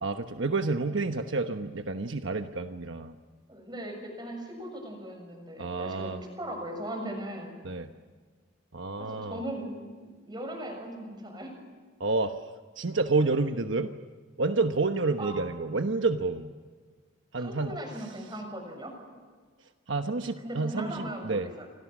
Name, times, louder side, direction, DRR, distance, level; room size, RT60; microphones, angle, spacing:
voice 1, 0.0-3.2 5.6-6.2 7.6-7.9 8.7-9.4 12.0-12.4 12.8-13.9 14.4-16.5 17.3-17.8 19.9-21.5, right 3 dB, 70° right, 7 dB, 1.1 m, -29 dB
voice 2, 3.5-7.6 9.1-11.6 15.2-15.3 17.3-18.9 20.4-21.7, right 1 dB, 20° right, 4 dB, 6.8 m, -38 dB
30.0 x 26.0 x 6.2 m, 1.5 s
head